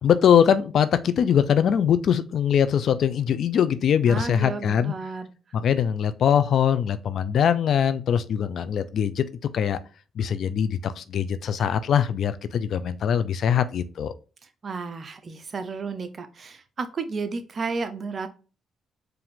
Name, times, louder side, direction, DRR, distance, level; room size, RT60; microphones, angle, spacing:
voice 1, 0.0-4.9 5.5-9.2 9.5-9.8 10.2-14.1, left 8 dB, 65° left, 0.4 m, -22 dB
voice 2, 4.1-5.3 14.6-18.3, right 4 dB, 45° right, 0.7 m, -32 dB
4.8 x 2.5 x 3.6 m
cardioid pair, 75°, 0 cm